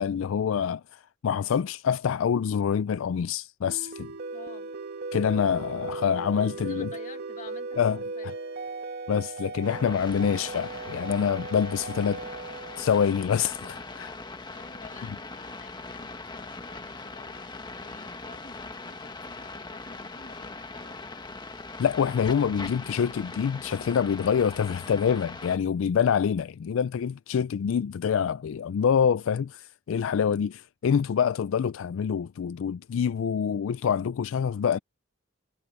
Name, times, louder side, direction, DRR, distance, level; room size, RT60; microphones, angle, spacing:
voice 1, 0.0-4.1 5.1-6.9 7.8-8.0 9.1-12.2 12.8-14.1 21.8-34.8, left 7 dB, 70° left, 0.4 m, -26 dB
sound 1, 3.7-14.0, right 3 dB, 55° right, 1.9 m, -38 dB
voice 2, 4.3-4.7 6.7-8.3 14.4-17.5 17.8-21.0, left 3 dB, 40° left, 1.8 m, -50 dB
sound 2, 9.6-25.6, left 3 dB, 20° left, 1.4 m, -41 dB
head